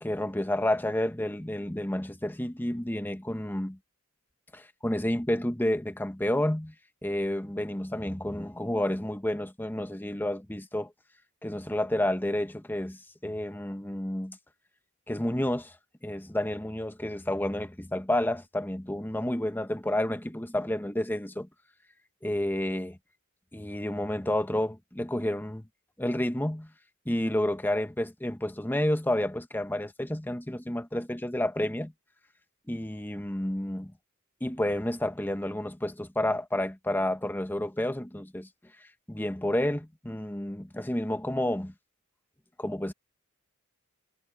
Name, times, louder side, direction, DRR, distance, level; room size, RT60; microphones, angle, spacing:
voice 1, 0.0-3.8 4.5-6.7 7.0-10.9 11.4-14.4 15.1-15.7 16.0-21.5 22.2-23.0 23.5-25.7 26.0-26.7 27.1-31.9 32.7-33.9 34.4-38.5 39.1-41.7 42.6-42.9, left 1 dB, 10° left, 1.0 m, -30 dB
head